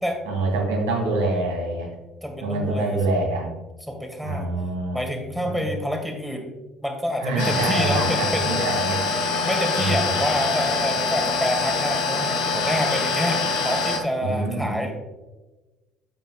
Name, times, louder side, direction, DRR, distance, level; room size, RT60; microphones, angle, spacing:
voice 1, 0.2-1.9 2.4-3.5 4.2-5.0 5.4-5.6 7.2-9.0 9.8-10.1 14.2-14.9, right 2 dB, 80° right, -2 dB, 2.7 m, -25 dB
voice 2, 2.2-3.2 3.9-4.5 4.9-8.7 9.4-14.9, equal, ahead, 3 dB, 2.2 m, -27 dB
sound 1, 7.4-14.0, left 4 dB, 70° left, 1.4 m, -24 dB
10.5 x 7.9 x 2.4 m, 1.1 s
hypercardioid pair, 55°, 0 cm